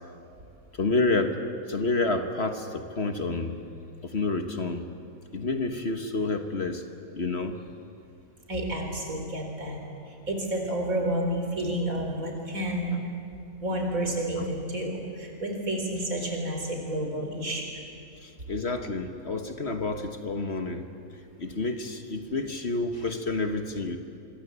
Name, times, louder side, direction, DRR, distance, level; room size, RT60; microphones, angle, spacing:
voice 1, 0.7-1.4 1.7-3.6 4.0-4.8 5.3-6.9 7.2-7.6 14.4-14.5 18.2-20.9 21.4-24.0, left 3 dB, 45° left, 6 dB, 1.6 m, -29 dB
voice 2, 8.5-9.8 10.1-13.1 13.6-17.7, right 1 dB, 65° right, 2 dB, 4.7 m, -30 dB
26.5 x 23.0 x 8.3 m, 2.5 s
omnidirectional pair, 1.6 m